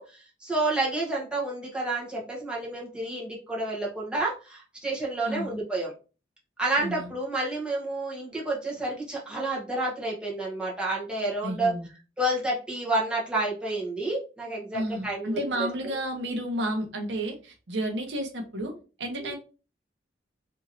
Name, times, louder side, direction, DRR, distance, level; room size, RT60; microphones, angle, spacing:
voice 1, 0.0-5.9 6.6-11.7 12.2-15.7 19.2-19.3, right 2 dB, 5° right, -5 dB, 0.9 m, -30 dB
voice 2, 5.3-5.6 6.8-7.1 11.4-11.9 14.7-18.7 19.0-19.4, right 1 dB, 85° right, 4 dB, 0.8 m, -31 dB
3.0 x 2.6 x 2.6 m, 0.33 s
head